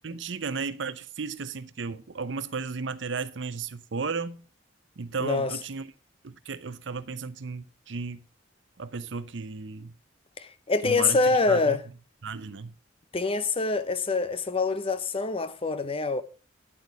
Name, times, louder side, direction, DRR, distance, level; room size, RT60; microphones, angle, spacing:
voice 1, 0.0-4.4 5.0-5.9 6.2-8.2 8.8-9.9 10.8-11.2 11.5-11.8 12.2-12.7, right 4 dB, 70° right, 0.6 m, -34 dB
voice 2, 5.2-5.5 10.4-11.8 13.1-16.2, left 3 dB, 30° left, 0.6 m, -25 dB
10.0 x 8.2 x 4.7 m
head